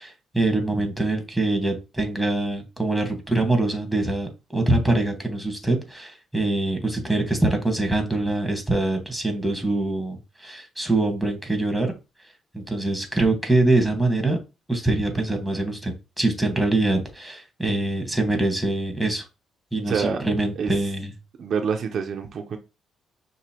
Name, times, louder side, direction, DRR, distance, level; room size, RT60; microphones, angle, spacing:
voice 1, 0.0-11.9 12.5-14.4 14.7-19.2 19.7-21.1, right 2 dB, 5° right, 1.4 m, -24 dB
voice 2, 19.9-20.2 20.6-20.7 21.4-22.6, right 6 dB, 60° right, 0.6 m, -26 dB
6.1 x 2.7 x 2.9 m
cardioid pair, 90°, 0 cm